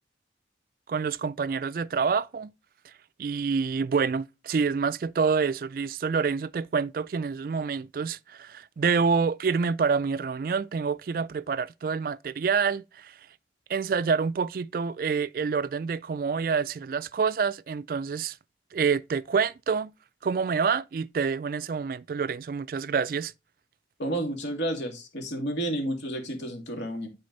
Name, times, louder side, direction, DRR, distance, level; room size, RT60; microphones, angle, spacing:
voice 1, 0.9-2.5 3.2-13.1 13.7-18.4 18.7-19.9 20.2-23.3, right 5 dB, 50° right, 0.3 m, -27 dB
voice 2, 24.0-27.1, right 1 dB, 80° left, 2.5 m, -31 dB
9.6 x 4.3 x 4.0 m
head